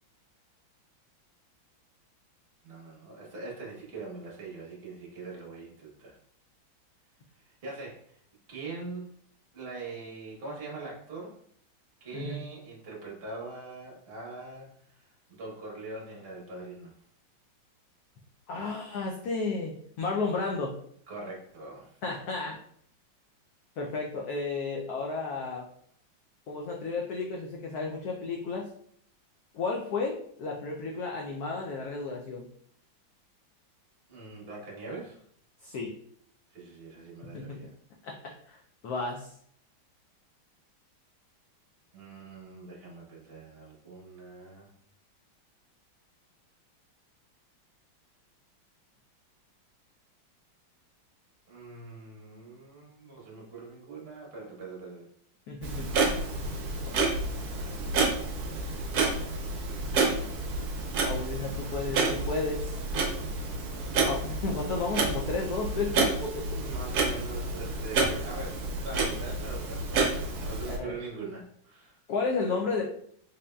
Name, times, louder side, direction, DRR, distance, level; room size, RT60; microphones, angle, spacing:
voice 1, 2.6-6.2 7.4-8.2 8.5-9.1 9.5-11.4 12.0-17.0 21.1-22.0 34.1-35.2 36.5-37.7 41.9-44.7 51.5-55.1 66.5-72.0, right 3 dB, 40° right, -3 dB, 1.0 m, -42 dB
voice 2, 18.5-20.7 22.0-22.6 23.8-25.7 26.5-28.7 29.5-32.5 35.6-35.9 37.3-37.6 38.0-38.1 38.5-38.6 38.8-39.3 55.5-55.9 56.9-57.0 61.0-62.8 64.0-66.4 70.7-71.0 72.1-72.8, left 3 dB, 90° left, -1 dB, 0.8 m, -32 dB
Clock, 55.6-70.8, right 3 dB, 65° right, 1.0 m, -30 dB
3.8 x 3.5 x 2.2 m, 0.66 s
omnidirectional pair, 2.2 m